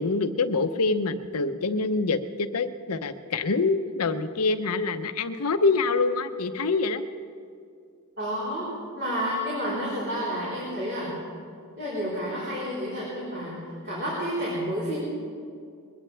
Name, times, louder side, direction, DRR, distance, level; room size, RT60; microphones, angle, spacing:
voice 1, 0.0-7.0, left 3 dB, 85° left, 10 dB, 0.8 m, -25 dB
voice 2, 8.2-8.7 9.0-11.2 11.8-13.6 13.8-15.0, equal, 50° right, -9 dB, 4.1 m, -30 dB
21.5 x 17.0 x 3.4 m, 2.3 s
head